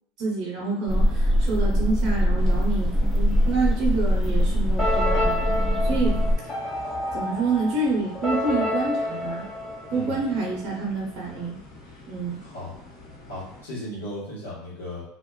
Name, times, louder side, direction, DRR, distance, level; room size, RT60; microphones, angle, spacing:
voice 1, 0.2-6.2 7.1-9.5 9.9-11.6 12.1-12.4, right 3 dB, 50° right, -3 dB, 0.7 m, -27 dB
sound 1, 0.9-6.4, equal, 5° right, 0.4 m, -22 dB
sound 2, 2.4-13.6, left 1 dB, 50° left, 0.9 m, -46 dB
sound 3, 4.8-10.5, left 1 dB, 25° left, 1.2 m, -29 dB
voice 2, 5.9-6.3 9.9-10.2 12.4-12.7 13.3-15.0, left 1 dB, 90° left, -8 dB, 1.2 m, -36 dB
2.4 x 2.2 x 2.2 m, 0.74 s
hypercardioid pair, 100°, 0 cm